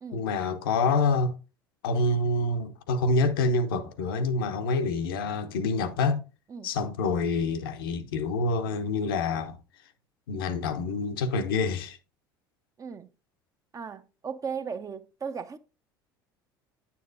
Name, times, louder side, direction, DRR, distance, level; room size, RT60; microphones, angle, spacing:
voice 1, 0.1-1.4 1.8-6.2 6.6-9.6 10.3-12.0, left 3 dB, 75° left, 0.8 m, -27 dB
voice 2, 12.8-13.1 13.7-15.6, right 6 dB, 30° right, 0.7 m, -36 dB
9.3 x 7.0 x 2.6 m
hypercardioid pair, 70°, 12 cm